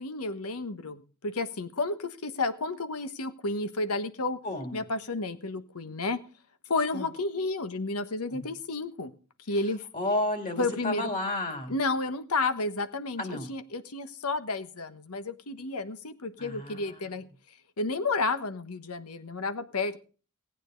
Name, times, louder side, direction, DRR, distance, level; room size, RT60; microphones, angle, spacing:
voice 1, 0.0-4.4 4.7-6.2 6.7-9.1 9.5-9.8 10.6-11.1 11.7-17.2 17.8-20.0, left 3 dB, 90° left, 12 dB, 1.2 m, -31 dB
voice 2, 4.4-4.8 6.9-7.1 8.3-8.4 9.9-11.7 13.2-13.5 16.4-16.8, left 2 dB, 35° left, 5 dB, 2.8 m, -31 dB
18.5 x 9.1 x 3.9 m, 0.37 s
head